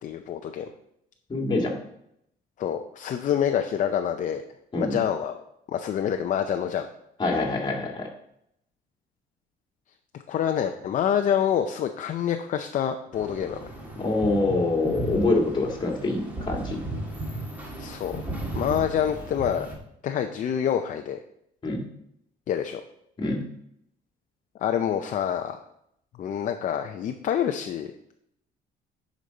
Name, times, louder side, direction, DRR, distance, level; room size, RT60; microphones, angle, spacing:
voice 1, 0.0-0.7 2.6-4.4 4.8-5.4 5.7-6.9 10.3-13.6 17.8-18.2 18.6-19.7 20.0-21.2 22.5-22.8 24.6-25.6 26.2-27.9, left 9 dB, 50° left, 6 dB, 0.6 m, -26 dB
voice 2, 1.3-1.7 4.7-5.0 7.2-8.1 14.0-16.8 21.6-21.8 23.2-23.5, left 2 dB, 25° left, 0 dB, 2.1 m, -25 dB
sound 1, 13.1-19.8, right 1 dB, 10° right, 2.0 m, -35 dB
9.9 x 5.2 x 4.1 m, 0.75 s
cardioid pair, 110°, 17 cm